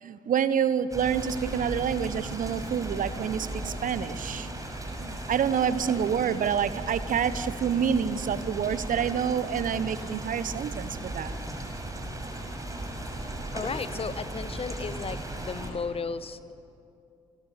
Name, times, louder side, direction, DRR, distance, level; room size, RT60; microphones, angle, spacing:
voice 1, 0.0-4.5 5.0-11.4, right 8 dB, 45° right, 15 dB, 1.2 m, -28 dB
sound 1, 0.9-15.7, right 1 dB, 20° right, 6.1 m, -36 dB
voice 2, 13.5-16.5, left 5 dB, 30° left, 13 dB, 1.3 m, -34 dB
29.0 x 29.0 x 6.9 m, 2.5 s
figure-of-eight pair, 45°, 19 cm